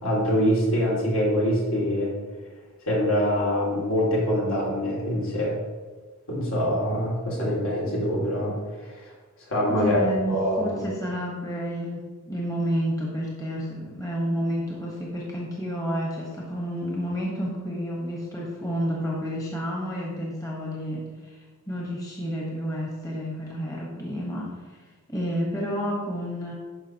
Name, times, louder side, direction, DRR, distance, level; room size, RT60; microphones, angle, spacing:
voice 1, 0.0-2.1 2.9-5.6 6.3-9.1 9.5-10.0 10.3-10.8, equal, 65° left, -4 dB, 2.4 m, -24 dB
voice 2, 9.7-21.4 21.7-24.8 25.1-26.5, equal, 15° left, -4 dB, 1.2 m, -30 dB
11.5 x 5.0 x 2.9 m, 1.3 s
head